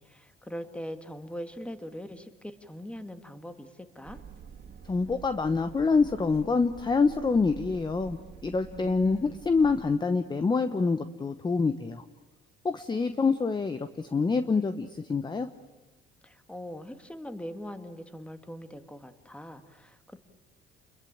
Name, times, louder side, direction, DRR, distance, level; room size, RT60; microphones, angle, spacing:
voice 1, 0.0-4.2 8.7-9.4 16.2-20.2, equal, 5° left, 8 dB, 1.9 m, -41 dB
sound 1, 4.0-10.0, right 6 dB, 50° right, 2.8 m, -48 dB
voice 2, 4.9-8.2 8.4-12.0 12.6-15.5, left 4 dB, 20° left, 10 dB, 1.0 m, -26 dB
29.5 x 21.5 x 8.8 m, 1.1 s
cardioid pair, 105°, 21 cm